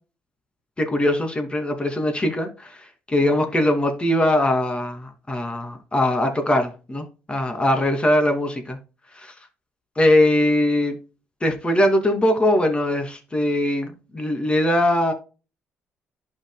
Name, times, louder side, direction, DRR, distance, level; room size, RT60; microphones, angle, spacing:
voice 1, 0.8-2.7 3.1-8.8 9.2-9.3 10.0-11.0 11.4-15.1, left 1 dB, 20° left, 2.7 m, -21 dB
11.5 x 5.9 x 2.3 m
supercardioid pair, 75°, 5 cm